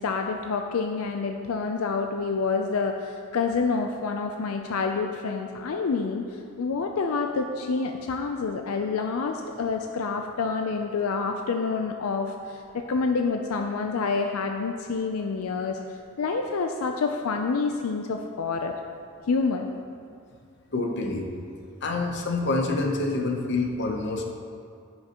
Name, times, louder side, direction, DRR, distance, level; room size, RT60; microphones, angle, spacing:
voice 1, 0.0-18.7 19.3-19.7, left 4 dB, 85° left, 4 dB, 0.5 m, -28 dB
voice 2, 20.7-21.3 21.8-24.2, left 3 dB, 55° left, 2 dB, 0.9 m, -27 dB
14.5 x 5.6 x 3.0 m, 2.3 s
head